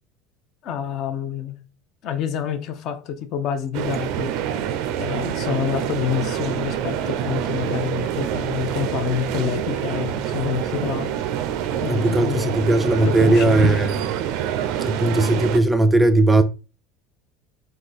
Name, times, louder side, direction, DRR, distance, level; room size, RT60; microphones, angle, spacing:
voice 1, 0.6-1.5 2.0-4.3 5.0-11.1 11.8-12.6 13.0-13.7, left 9 dB, 50° left, 0.7 m, -27 dB
sound 1, 3.7-15.6, right 10 dB, 65° right, 0.5 m, -26 dB
voice 2, 11.9-14.0 14.8-16.4, right 2 dB, 10° right, 0.4 m, -18 dB
3.7 x 2.7 x 4.0 m
supercardioid pair, 140°, 0 cm